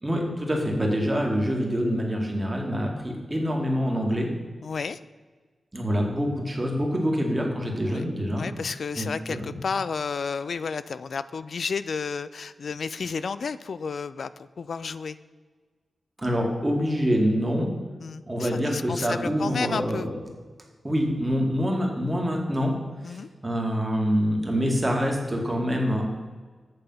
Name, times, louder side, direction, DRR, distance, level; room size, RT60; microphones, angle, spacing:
voice 1, 0.0-4.3 5.7-8.4 9.0-9.5 16.2-17.7 18.3-20.2 20.8-22.7 23.0-26.0, equal, 20° right, 0 dB, 2.1 m, -26 dB
voice 2, 4.6-5.0 7.8-8.1 8.4-14.3 14.6-15.2 18.0-20.1 23.0-23.3, left 5 dB, 65° left, 15 dB, 0.3 m, -32 dB
8.5 x 6.8 x 5.7 m, 1.5 s
wide cardioid pair, 100°, 0 cm